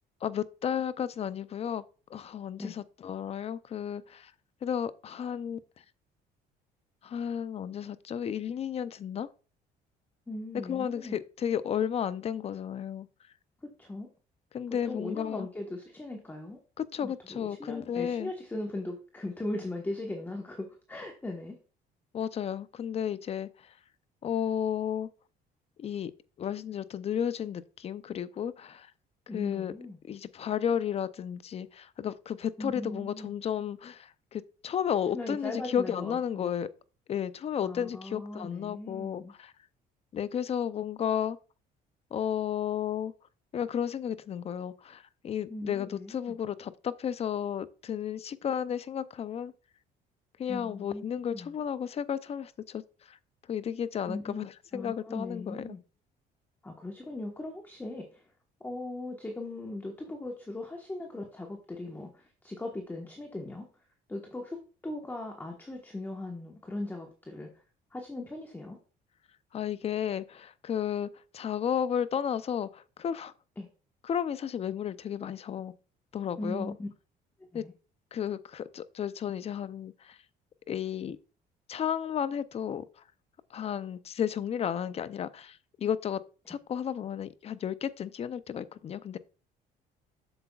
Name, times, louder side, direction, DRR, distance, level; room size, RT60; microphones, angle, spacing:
voice 1, 0.2-1.8 2.1-4.3 4.6-5.6 7.0-9.3 10.7-13.1 14.5-15.5 16.8-18.3 22.1-23.7 24.2-25.1 25.8-26.1 26.4-28.9 29.3-29.7 30.1-36.7 37.1-39.5 40.1-41.4 42.1-43.1 43.5-49.5 50.4-52.8 53.1-53.2 53.5-55.8 69.5-73.3 74.1-75.7 76.1-76.7 77.5-77.7 78.1-80.2 80.7-81.2 81.7-82.8 83.5-86.2 86.5-89.2, left 9 dB, 35° left, 0.5 m, -33 dB
voice 2, 10.3-11.2 13.6-14.1 14.7-16.6 17.0-21.6 29.3-30.0 32.6-33.3 35.1-36.5 37.6-39.3 45.5-46.4 50.5-51.6 54.1-54.5 54.7-55.8 56.6-58.2 58.6-63.7 64.1-64.6 64.8-67.6 67.9-68.8 73.6-73.7 76.4-76.9 77.5-77.7, left 2 dB, 10° left, 1.2 m, -39 dB
7.9 x 6.7 x 2.3 m
cardioid pair, 110°, 17 cm